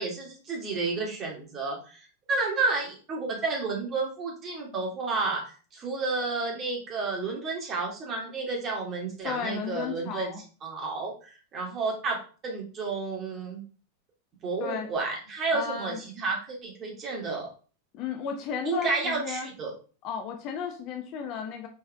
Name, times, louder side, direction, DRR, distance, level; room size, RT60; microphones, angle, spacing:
voice 1, 0.0-2.0 2.3-10.4 10.6-12.2 12.4-13.6 14.4-17.5 18.6-19.7, right 3 dB, 30° right, -1 dB, 2.4 m, -31 dB
voice 2, 9.2-10.4 14.6-14.9 15.5-16.0 17.9-19.5 20.0-21.7, left 6 dB, 40° left, 4 dB, 1.0 m, -34 dB
5.6 x 4.7 x 3.6 m, 0.37 s
figure-of-eight pair, 90°, 0 cm